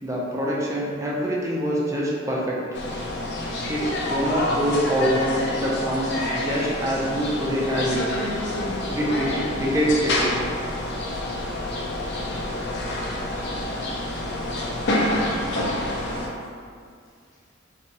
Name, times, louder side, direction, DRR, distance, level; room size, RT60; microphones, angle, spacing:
voice 1, 0.0-2.6 3.7-8.0 8.9-10.3, equal, 15° right, -4 dB, 0.4 m, -25 dB
sound 1, 2.7-16.3, left 1 dB, 55° left, 0.5 m, -27 dB
voice 2, 15.3-17.6, equal, 15° left, -9 dB, 0.8 m, -47 dB
3.0 x 2.6 x 2.6 m, 2.1 s
head